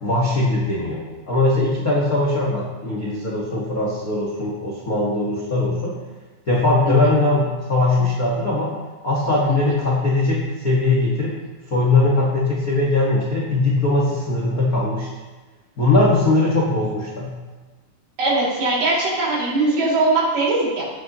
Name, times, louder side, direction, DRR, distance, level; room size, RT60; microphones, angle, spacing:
voice 1, 0.0-1.0 1.3-5.9 6.5-8.7 9.0-11.3 11.7-15.1 15.8-17.3, left 2 dB, 85° left, -5 dB, 0.8 m, -20 dB
voice 2, 18.2-20.8, right 2 dB, 60° right, -6 dB, 4.1 m, -20 dB
16.0 x 6.9 x 3.0 m, 1.2 s
omnidirectional pair, 4.4 m